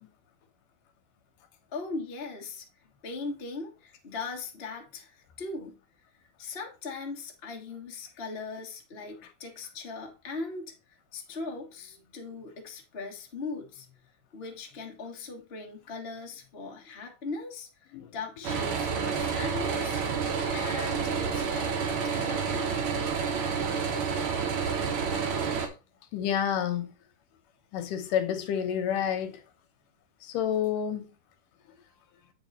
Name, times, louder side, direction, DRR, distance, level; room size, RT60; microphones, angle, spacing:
voice 1, 1.7-5.8 6.4-14.0 14.3-20.0 20.5-22.8, left 3 dB, 40° left, 0.8 m, -39 dB
sound 1, 18.4-25.7, right 6 dB, 80° right, 1.1 m, -29 dB
voice 2, 26.1-26.9 27.7-29.4 30.2-31.1, left 9 dB, 75° left, 2.3 m, -29 dB
8.2 x 4.8 x 4.1 m
omnidirectional pair, 4.1 m